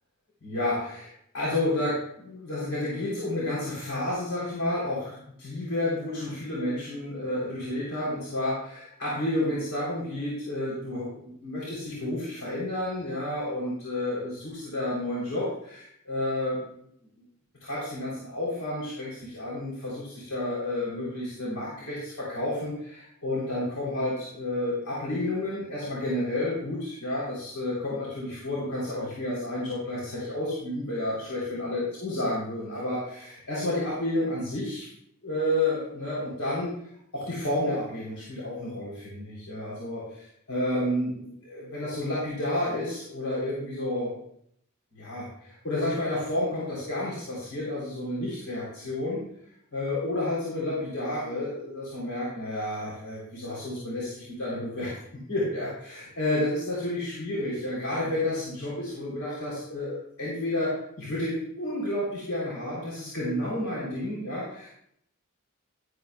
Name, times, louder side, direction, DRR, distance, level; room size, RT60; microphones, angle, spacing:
voice 1, 0.4-16.7 17.6-34.9 35.2-36.7 37.1-44.2 44.9-49.2 49.7-64.7, left 1 dB, 80° left, -7 dB, 3.5 m, -31 dB
12.0 x 12.0 x 2.3 m, 0.70 s
head